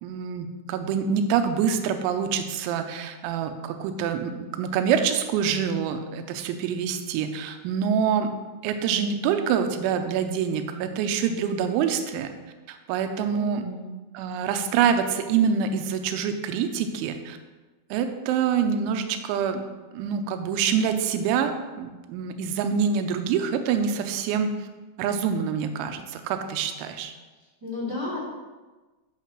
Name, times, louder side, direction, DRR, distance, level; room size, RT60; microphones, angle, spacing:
voice 1, 0.0-8.3 8.6-12.3 12.7-13.6 14.1-17.4 17.9-19.6 19.9-21.5 21.8-24.7 25.0-27.1, right 7 dB, 85° right, 7 dB, 3.0 m, -26 dB
voice 2, 13.3-13.9 27.6-28.2, left 2 dB, 10° right, -8 dB, 1.5 m, -33 dB
12.5 x 6.3 x 3.1 m, 1.2 s
omnidirectional pair, 5.4 m